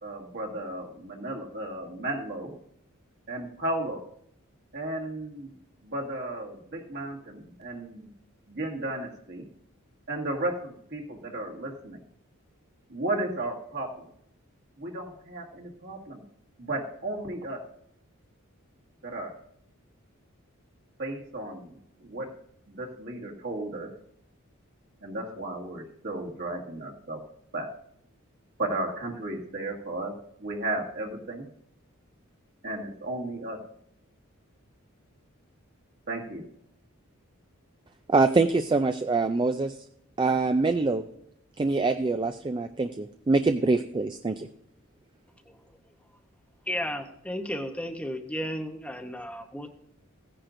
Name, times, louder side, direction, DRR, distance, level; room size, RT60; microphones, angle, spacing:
voice 1, 0.0-2.5 3.3-4.0 4.7-5.5 5.8-8.1 8.5-9.4 10.1-12.0 12.9-14.1 14.8-16.2 16.6-17.6 19.0-19.3 21.0-22.3 22.7-23.9 25.0-27.2 27.5-27.7 28.6-30.1 30.4-31.5 32.6-33.6 36.1-36.4, right 2 dB, 55° right, 0 dB, 1.9 m, -34 dB
voice 2, 38.1-39.7 40.2-41.0 41.6-44.5, right 3 dB, 20° right, 8 dB, 0.4 m, -24 dB
voice 3, 46.7-49.7, equal, 5° left, 5 dB, 0.8 m, -34 dB
15.5 x 10.0 x 2.6 m, 0.72 s
head